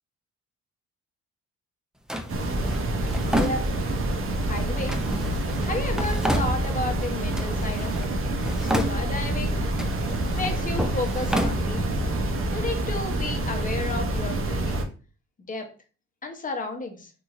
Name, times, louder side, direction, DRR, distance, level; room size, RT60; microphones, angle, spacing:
Drawer open or close, 2.1-4.2 4.9-7.0 7.3-8.1 8.4-9.3 9.7-12.2, equal, ahead, 0.3 m, -31 dB
sound 1, 2.3-14.8, right 1 dB, 45° right, 0.6 m, -27 dB
voice 1, 3.3-3.6 4.5-5.0 5.6-8.1 8.6-9.7 10.3-12.0 12.5-14.9 15.5-15.7 16.2-17.1, left 2 dB, 25° left, 4 dB, 0.8 m, -32 dB
3.0 x 2.5 x 2.4 m, 0.37 s
cardioid pair, 90°, 30 cm